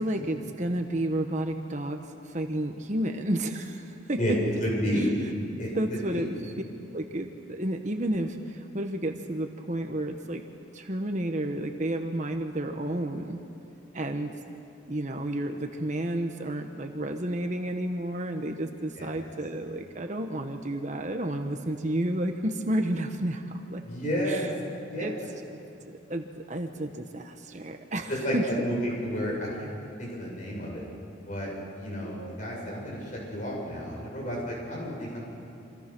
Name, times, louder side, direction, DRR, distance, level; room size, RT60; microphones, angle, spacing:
voice 1, 0.0-2.0 2.2-4.4 5.7-6.5 6.9-10.4 10.7-13.4 13.9-14.3 14.9-23.8 24.2-24.5 25.0-25.2 26.1-28.7, right 1 dB, 40° right, 5 dB, 1.3 m, -31 dB
voice 2, 4.6-5.1 5.6-6.3 19.0-19.2 23.8-24.5 24.8-25.1 28.1-29.7 30.0-30.8 31.2-31.5 31.8-35.2, equal, 40° left, -3 dB, 8.0 m, -31 dB
28.5 x 26.0 x 6.2 m, 2.6 s
head